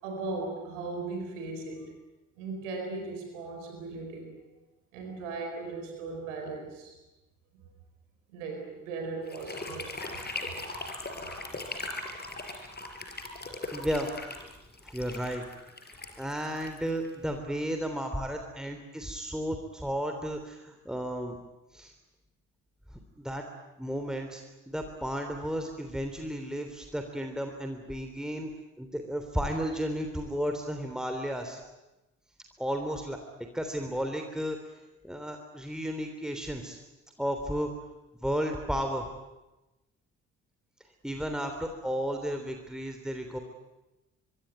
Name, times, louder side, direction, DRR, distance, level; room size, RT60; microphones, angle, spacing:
voice 1, 0.0-1.9 2.4-4.3 4.9-6.9 8.3-9.9, right 3 dB, 70° right, 3 dB, 4.8 m, -37 dB
sound 1, 9.3-17.3, left 2 dB, 25° left, 5.0 m, -39 dB
voice 2, 13.7-14.1 14.8-15.4 16.2-21.4 21.7-21.9 22.9-23.4 23.8-28.5 28.8-31.6 32.6-33.2 33.5-34.6 35.0-36.8 37.2-37.7 38.2-39.1 41.0-43.4, equal, ahead, 4 dB, 3.2 m, -33 dB
25.0 x 24.0 x 9.5 m, 1.0 s
figure-of-eight pair, 40°, 38 cm